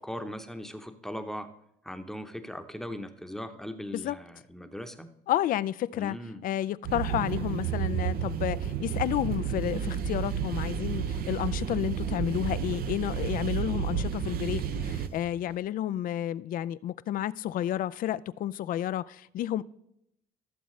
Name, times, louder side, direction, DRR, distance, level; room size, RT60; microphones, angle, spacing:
voice 1, 0.0-1.5 1.8-5.1 5.9-6.4, equal, ahead, 0.8 m, -39 dB
voice 2, 5.3-6.2 6.4-19.6, left 12 dB, 55° left, 0.4 m, -31 dB
sound 1, 6.9-15.1, right 8 dB, 65° right, 0.6 m, -31 dB
sound 2, 7.0-15.6, right 4 dB, 35° right, 0.9 m, -50 dB
15.5 x 7.1 x 3.2 m
cardioid pair, 110°, 17 cm